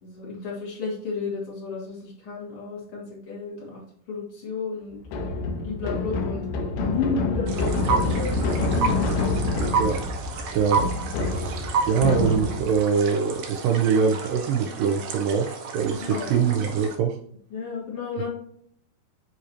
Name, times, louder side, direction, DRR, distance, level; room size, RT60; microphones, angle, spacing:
voice 1, 0.0-5.0 5.6-6.5 6.8-8.4 15.9-16.5 17.5-18.3, left 4 dB, 40° left, -4 dB, 2.6 m, -32 dB
sound 1, 5.0-12.8, left 3 dB, 75° left, 2.1 m, -27 dB
sound 2, 7.5-17.0, right 5 dB, 70° right, 2.0 m, -31 dB
voice 2, 10.5-10.9 11.2-17.2, right 6 dB, 85° right, 4 dB, 1.9 m, -24 dB
10.0 x 3.8 x 2.9 m, 0.64 s
omnidirectional pair, 4.6 m